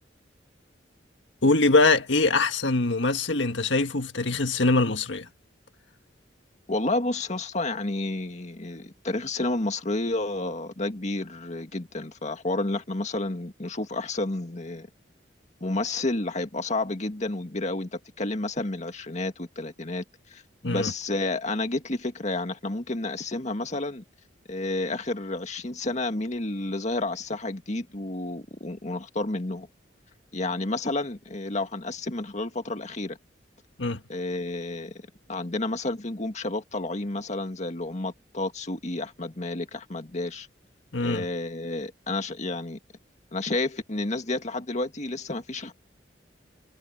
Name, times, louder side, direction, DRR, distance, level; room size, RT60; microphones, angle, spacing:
voice 1, 1.4-5.3 20.6-20.9 33.8-34.0 40.9-41.2, left 3 dB, 85° left, 1.6 m, -23 dB
voice 2, 6.7-14.9 15.6-20.0 20.3-24.0 24.5-29.7 30.3-33.2 34.1-35.0 35.3-40.5 41.0-42.8 43.3-45.7, left 2 dB, 40° left, 2.0 m, -30 dB
head